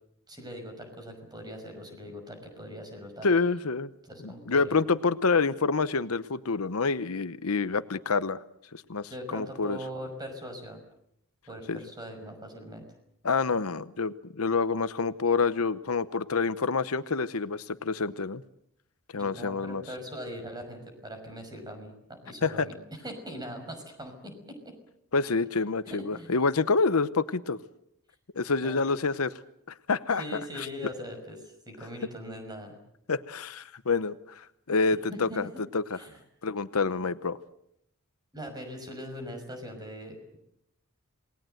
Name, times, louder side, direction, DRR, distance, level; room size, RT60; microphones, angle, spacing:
voice 1, 0.3-3.3 4.0-4.8 9.1-10.8 11.5-12.8 19.1-24.7 25.9-26.3 28.6-28.8 30.2-32.8 35.1-35.4 35.9-36.2 38.3-40.4, equal, 20° right, 5 dB, 5.8 m, -41 dB
voice 2, 3.2-3.9 4.2-8.4 8.7-9.8 11.7-11.8 13.2-18.4 19.1-19.8 22.4-22.7 25.1-27.6 28.4-29.3 29.7-30.7 33.1-35.5 35.7-36.0 36.4-37.4, left 4 dB, 75° left, 14 dB, 0.9 m, -27 dB
28.0 x 19.5 x 7.8 m, 0.76 s
head